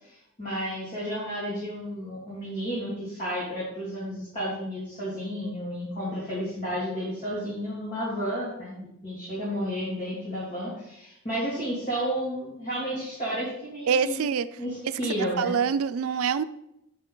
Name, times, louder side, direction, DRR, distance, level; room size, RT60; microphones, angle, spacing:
voice 1, 0.0-14.2 14.6-15.5, equal, 35° left, -8 dB, 2.6 m, -32 dB
voice 2, 13.9-14.5 15.4-16.4, right 6 dB, 80° right, 14 dB, 0.4 m, -25 dB
8.2 x 6.3 x 3.9 m, 0.82 s
head